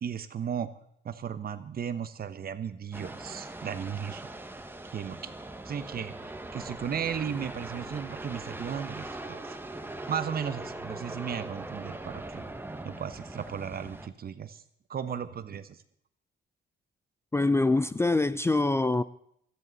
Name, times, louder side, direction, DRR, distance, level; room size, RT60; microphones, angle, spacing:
voice 1, 0.0-0.7 1.0-4.3 4.9-5.3 5.6-9.6 10.1-12.5 12.8-14.6 14.9-15.8, right 8 dB, 50° right, 1.1 m, -35 dB
sound 1, 2.9-14.1, right 2 dB, 10° right, 1.2 m, -41 dB
voice 2, 17.3-19.0, left 2 dB, 15° left, 0.4 m, -24 dB
17.0 x 13.5 x 4.1 m
cardioid pair, 90°, 20 cm